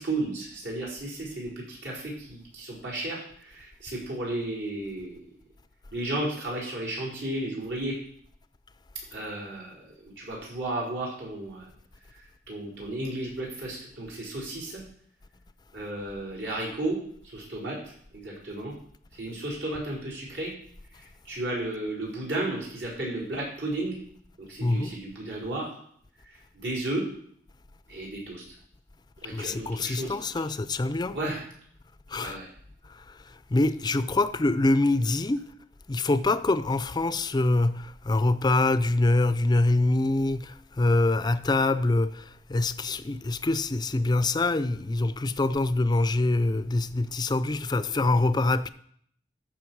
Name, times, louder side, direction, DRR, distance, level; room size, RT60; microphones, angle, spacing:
voice 1, 0.0-5.2 5.9-8.0 9.1-11.7 12.1-14.8 15.7-17.0 17.2-18.7 19.1-20.5 21.0-24.0 24.4-25.8 26.2-27.1 27.9-28.4 29.2-30.2 31.1-31.4 32.2-32.5, right 1 dB, 75° right, 4.9 m, -33 dB
voice 2, 24.6-25.0 29.3-31.2 32.1-32.4 32.9-33.2 33.5-35.5 35.9-48.7, left 2 dB, 25° left, 0.4 m, -25 dB
14.0 x 6.6 x 4.7 m
head